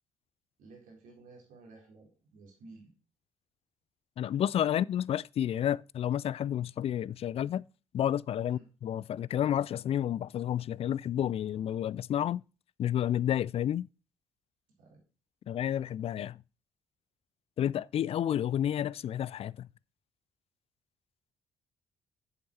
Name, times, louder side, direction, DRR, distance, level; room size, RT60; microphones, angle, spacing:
voice 1, 0.6-2.9 4.7-4.8 8.4-8.6 14.8-15.0, right 3 dB, 65° right, 4.3 m, -54 dB
voice 2, 4.2-7.7 7.9-12.4 12.8-13.9 15.5-16.4 17.6-19.7, left 10 dB, 40° left, 0.4 m, -30 dB
9.6 x 7.8 x 4.3 m
figure-of-eight pair, 45°, 15 cm